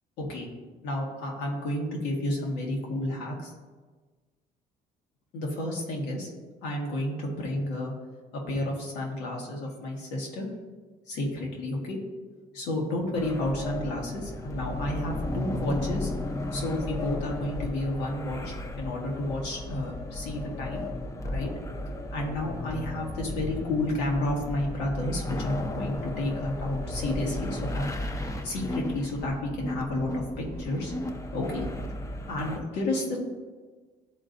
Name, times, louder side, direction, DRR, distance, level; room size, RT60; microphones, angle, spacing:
voice 1, 0.2-0.5 0.8-3.5 5.3-6.3 6.6-7.9 8.5-10.5 11.1-12.0 12.5-16.1 16.5-20.8 21.2-21.5 22.1-27.9 28.4-30.9 31.3-31.6 32.3-33.2, left 1 dB, 90° left, -1 dB, 1.5 m, -31 dB
sound 1, 13.1-32.6, left 1 dB, 20° left, 0.7 m, -34 dB
11.0 x 3.9 x 2.6 m, 1.4 s
cardioid pair, 110°, 17 cm